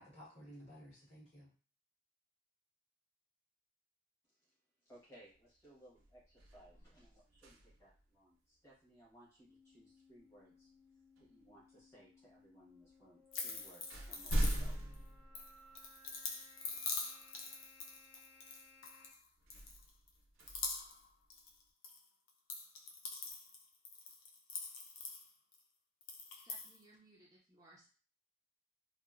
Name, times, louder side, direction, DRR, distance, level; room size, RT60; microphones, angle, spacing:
voice 1, 0.0-1.5, equal, 30° left, -8 dB, 1.4 m, -55 dB
voice 2, 4.8-10.7 11.2-14.8, right 1 dB, 15° left, -7 dB, 1.1 m, -62 dB
sound 1, 5.3-5.6 5.9-8.0 10.2-10.4 11.2-11.9 12.8-12.9 13.3-16.1 16.7-16.8 19.4-21.6, equal, 85° right, 0.6 m, -41 dB
sound 2, 9.5-19.1, left 2 dB, 55° left, 0.9 m, -64 dB
sound 3, 13.3-14.9 15.3-19.2 19.5-20.1 20.4-21.0 21.3-22.0 22.3-25.6 26.0-26.8, left 4 dB, 75° left, 0.5 m, -44 dB
voice 3, 26.3-27.9, right 2 dB, 15° right, -5 dB, 0.4 m, -63 dB
2.8 x 2.5 x 2.4 m, 0.39 s
head